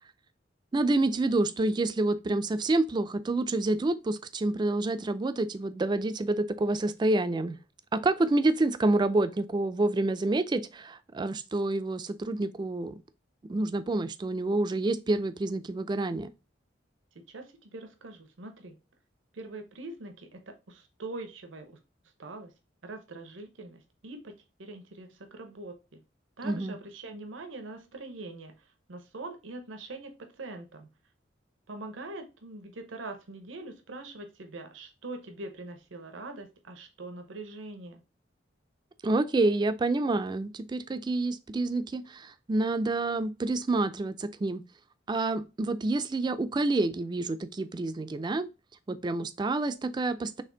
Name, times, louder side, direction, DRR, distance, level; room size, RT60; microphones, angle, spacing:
voice 1, 0.7-7.6 7.9-13.0 13.5-16.3 26.4-26.7 39.0-44.6 45.1-48.5 48.9-50.4, right 2 dB, 25° right, 0.3 m, -28 dB
voice 2, 17.1-18.8 19.3-21.8 22.2-22.5 22.8-24.3 24.6-26.0 26.4-31.0 31.7-38.0, right 2 dB, 90° right, 0.8 m, -43 dB
4.2 x 3.3 x 3.8 m
head